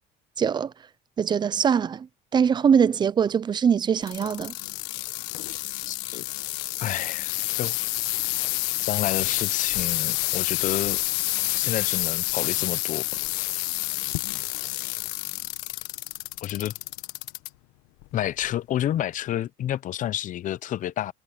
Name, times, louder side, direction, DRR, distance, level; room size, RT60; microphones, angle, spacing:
voice 1, 0.4-0.7 1.2-2.1 2.3-4.5, right 7 dB, 25° right, 0.4 m, -22 dB
sound 1, 4.0-17.5 18.0-18.5 19.1-19.2, left 21 dB, 90° left, 1.2 m, -29 dB
voice 2, 5.9-6.2 6.8-7.8 8.8-11.0 11.5-13.1 16.4-16.7 18.1-21.1, left 12 dB, 45° left, 0.7 m, -29 dB
cardioid pair, 130°, 19 cm